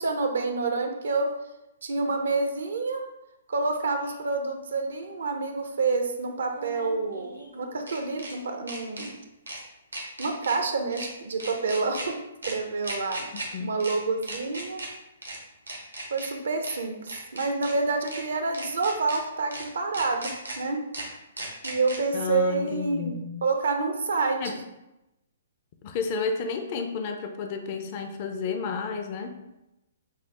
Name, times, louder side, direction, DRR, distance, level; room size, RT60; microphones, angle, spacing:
voice 1, 0.0-1.3 1.8-3.0 3.5-9.2 10.2-13.3 13.6-14.8 16.1-20.8 21.6-24.6, right 3 dB, 65° right, 5 dB, 0.5 m, -28 dB
sound 1, 4.0-4.1 6.5-8.3 8.7-9.1 9.5-9.6 9.9-10.6 10.9-11.1 11.4-12.1 12.4-12.5 12.8-13.5 13.8-14.0 14.2-14.9 15.2-15.4 15.7-16.3 16.6-16.8 17.1-17.7 18.1-18.2 18.5-19.2 19.5-19.6 19.9-20.6 20.9-21.1 21.4-22.0, right 2 dB, 90° right, 0.8 m, -37 dB
voice 2, 13.3-13.8 22.1-23.3 24.4-24.6 25.8-29.4, left 5 dB, 40° left, 5 dB, 0.4 m, -31 dB
5.4 x 2.1 x 2.9 m, 0.93 s
figure-of-eight pair, 120°, 0 cm